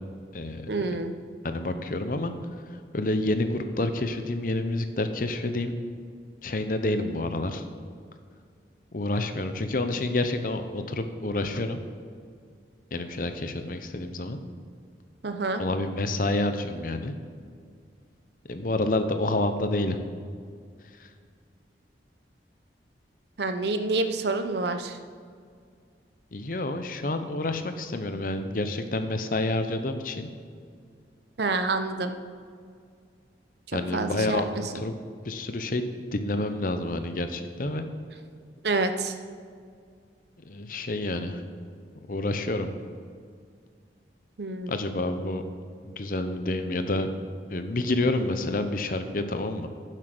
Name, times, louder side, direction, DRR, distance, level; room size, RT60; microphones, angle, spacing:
voice 1, 0.7-1.1 15.2-15.6 23.4-25.0 31.4-32.2 33.9-34.8 38.6-39.2 44.4-44.7, right 3 dB, 70° right, 8 dB, 0.8 m, -28 dB
voice 2, 1.4-2.3 2.7-5.7 6.4-7.6 8.9-11.8 12.9-14.4 15.6-17.1 18.5-20.0 21.0-21.1 26.3-30.3 33.7-34.9 35.2-37.8 40.4-41.4 42.1-42.7 44.7-45.4 45.8-47.1 47.5-49.7, left 2 dB, 50° left, 8 dB, 0.8 m, -28 dB
10.0 x 7.6 x 6.1 m, 2.1 s
head